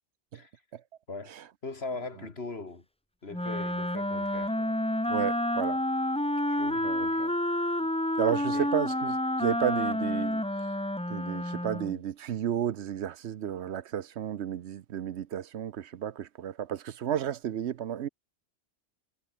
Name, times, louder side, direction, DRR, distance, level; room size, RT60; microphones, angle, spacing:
voice 1, 1.1-2.8 3.2-4.8 6.5-7.4 8.5-8.7, left 3 dB, 65° left, 2.9 m, -40 dB
Wind instrument woodwind instrument, 3.3-12.0, left 1 dB, 5° left, 0.8 m, -29 dB
voice 2, 5.1-5.8 6.8-7.1 8.2-10.7 11.1-18.1, right 10 dB, 75° right, 1.0 m, -32 dB
omnidirectional pair, 1.2 m